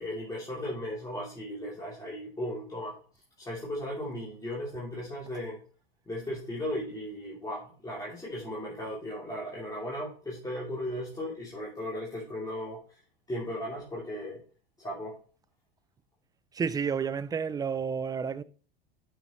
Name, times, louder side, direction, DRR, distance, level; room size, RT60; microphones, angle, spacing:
voice 1, 0.0-3.0 3.4-5.6 6.1-12.8 13.3-14.4 14.8-15.2, left 1 dB, 10° left, 2.8 m, -36 dB
voice 2, 16.5-18.4, right 6 dB, 15° right, 0.4 m, -30 dB
10.0 x 6.4 x 3.0 m
hypercardioid pair, 100°, 30 cm